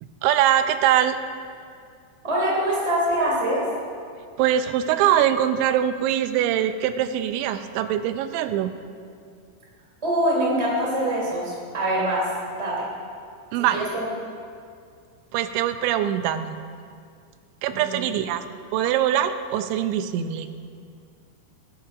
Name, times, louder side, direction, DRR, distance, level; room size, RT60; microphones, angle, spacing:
voice 1, 0.2-1.2 4.4-8.7 13.5-13.8 15.3-16.6 17.6-18.4 18.7-20.5, right 10 dB, 85° right, 10 dB, 2.9 m, -22 dB
voice 2, 2.2-3.7 10.0-12.3 12.5-12.9 13.6-14.1 17.7-18.1, right 1 dB, 10° right, -6 dB, 1.8 m, -24 dB
19.5 x 11.0 x 2.5 m, 2.2 s
omnidirectional pair, 5.2 m